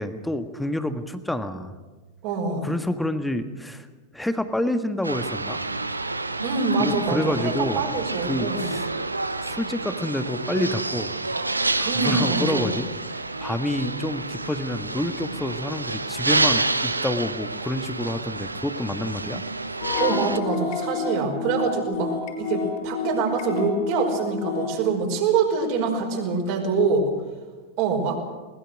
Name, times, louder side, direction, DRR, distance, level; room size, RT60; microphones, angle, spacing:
voice 1, 0.0-1.7 2.6-3.9 4.1-5.6 6.8-7.8 8.3-8.9 9.4-11.2 11.8-19.4, left 1 dB, 5° left, 9 dB, 1.5 m, -28 dB
voice 2, 2.2-2.7 6.4-8.7 11.8-12.7 20.0-22.1 22.4-27.2 27.8-28.2, right 4 dB, 45° right, 2 dB, 5.3 m, -25 dB
sound 1, 5.0-20.4, right 2 dB, 80° right, 0.9 m, -28 dB
sound 2, 19.8-24.8, left 5 dB, 50° left, 5.2 m, -29 dB
22.0 x 20.5 x 6.3 m, 1.3 s
figure-of-eight pair, 90°, 0 cm